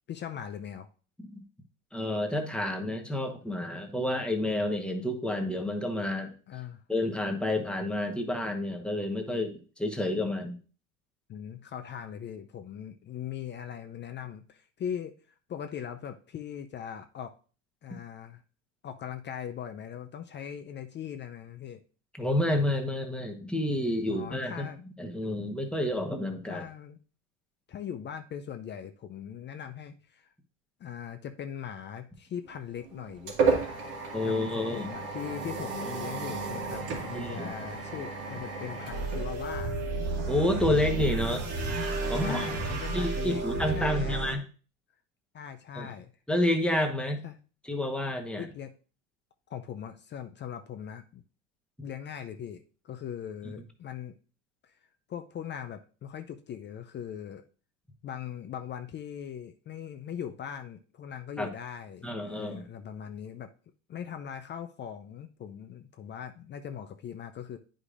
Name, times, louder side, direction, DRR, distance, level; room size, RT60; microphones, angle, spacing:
voice 1, 0.1-0.9 6.5-6.8 11.3-17.3 17.8-18.4 18.8-21.8 24.1-24.9 26.5-27.0 27.7-30.3 30.8-33.8 34.2-39.8 42.1-43.4 43.7-44.3 45.3-46.1 47.2-47.4 48.4-48.7 49.5-51.2 51.8-54.1 54.6-54.8 55.1-57.4 58.0-63.5 63.9-67.6, left 9 dB, 30° left, 7 dB, 0.5 m, -40 dB
voice 2, 1.9-6.3 6.9-10.6 22.2-24.7 25.0-26.6 34.1-34.9 37.1-37.5 40.3-41.5 42.1-44.4 45.7-45.9 46.3-47.2 47.7-48.5 61.4-61.5 62.0-62.6, left 1 dB, 5° left, 3 dB, 1.1 m, -29 dB
sound 1, 32.5-40.0, right 4 dB, 70° right, 2.1 m, -33 dB
sound 2, 38.9-44.3, right 3 dB, 45° right, 1.6 m, -31 dB
9.5 x 5.1 x 2.5 m, 0.37 s
hypercardioid pair, 95°, 37 cm